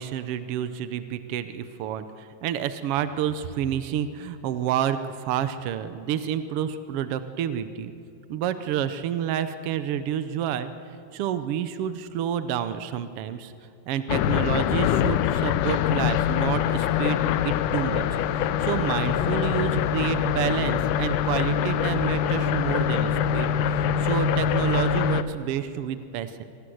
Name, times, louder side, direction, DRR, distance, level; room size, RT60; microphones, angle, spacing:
voice 1, 0.0-7.9 8.3-10.7 11.1-13.5 13.9-18.1 18.6-26.4, right 9 dB, 80° right, 11 dB, 1.3 m, -29 dB
sound 1, 14.1-25.2, left 9 dB, 80° left, 2.2 m, -24 dB
26.0 x 17.5 x 7.9 m, 2.9 s
omnidirectional pair, 3.7 m